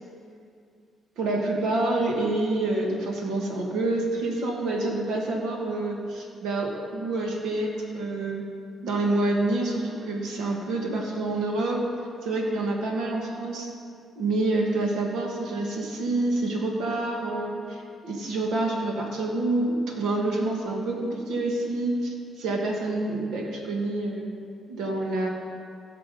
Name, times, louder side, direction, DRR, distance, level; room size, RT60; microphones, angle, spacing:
voice 1, 1.2-8.4 8.8-11.9 12.2-13.7 14.2-24.3 24.7-25.3, right 2 dB, 85° right, 0 dB, 1.8 m, -27 dB
15.5 x 6.0 x 5.3 m, 2.4 s
cardioid pair, 90°, 0 cm